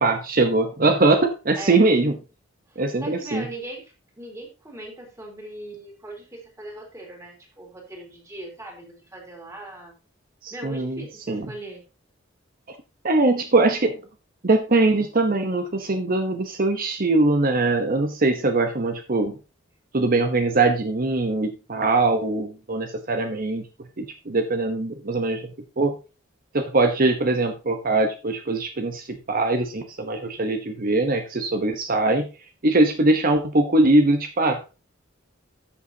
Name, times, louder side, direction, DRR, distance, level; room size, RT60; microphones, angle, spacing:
voice 1, 0.0-2.1 2.8-3.4 10.4-11.5 13.0-14.0 14.4-19.4 19.9-23.6 24.0-25.5 25.8-25.9 26.5-32.3 32.6-34.7, right 2 dB, 45° right, 7 dB, 1.0 m, -22 dB
voice 2, 2.7-9.9 10.5-11.8, right 1 dB, 15° right, 1 dB, 3.2 m, -39 dB
13.0 x 6.8 x 2.8 m, 0.30 s
head